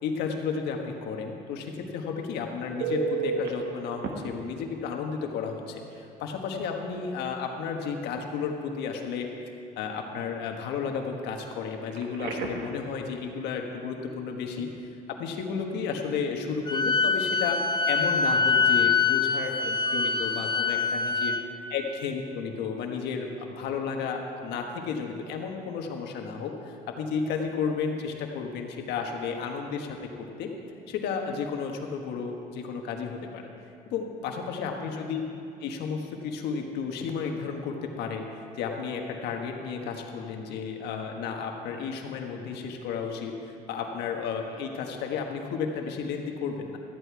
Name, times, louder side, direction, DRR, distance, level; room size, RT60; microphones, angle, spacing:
voice 1, 0.0-9.3 9.8-14.7 15.1-21.3 21.7-30.5 30.9-33.5 33.9-35.2 35.6-46.8, left 5 dB, 85° left, 2 dB, 1.4 m, -33 dB
Telephone, 2.8-3.5 4.0-4.1 5.9-6.0 6.4-6.6 11.9-12.7 19.9-20.1, right 4 dB, 75° right, 1.3 m, -31 dB
Wind instrument woodwind instrument, 16.7-21.4, left 5 dB, 25° left, 0.6 m, -24 dB
13.5 x 10.0 x 4.7 m, 2.6 s
cardioid pair, 110°, 17 cm